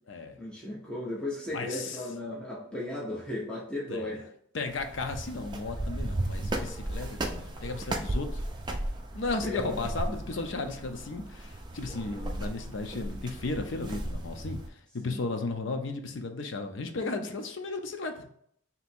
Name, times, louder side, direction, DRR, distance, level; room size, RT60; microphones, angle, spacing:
voice 1, 0.4-4.2 6.2-6.3 9.4-9.8 12.0-12.1 15.1-15.2, left 1 dB, 5° left, -6 dB, 0.7 m, -36 dB
voice 2, 1.5-2.0 3.9-4.1 4.5-8.4 9.1-14.6 14.9-18.3, left 3 dB, 70° left, 5 dB, 0.6 m, -35 dB
sound 1, 4.7-14.7, right 1 dB, 20° right, 0.4 m, -35 dB
3.4 x 2.8 x 4.3 m, 0.67 s
head